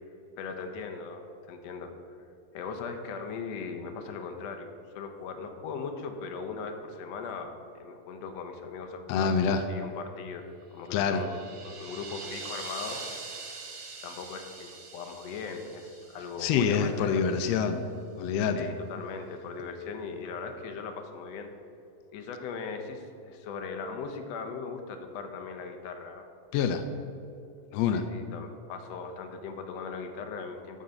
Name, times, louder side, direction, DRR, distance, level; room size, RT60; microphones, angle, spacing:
voice 1, 0.4-1.9 2.5-10.4 10.7-11.3 11.6-13.0 14.0-17.3 18.5-21.5 22.1-26.2 27.9-30.8, left 5 dB, 70° left, 5 dB, 1.7 m, -39 dB
voice 2, 9.1-9.6 10.9-11.2 16.4-17.8 18.2-18.7 26.5-26.8 27.7-28.1, left 6 dB, 85° left, 8 dB, 1.4 m, -26 dB
sound 1, 10.9-17.1, right 4 dB, 60° right, 1.2 m, -43 dB
11.0 x 3.9 x 7.7 m, 2.5 s
omnidirectional pair, 3.5 m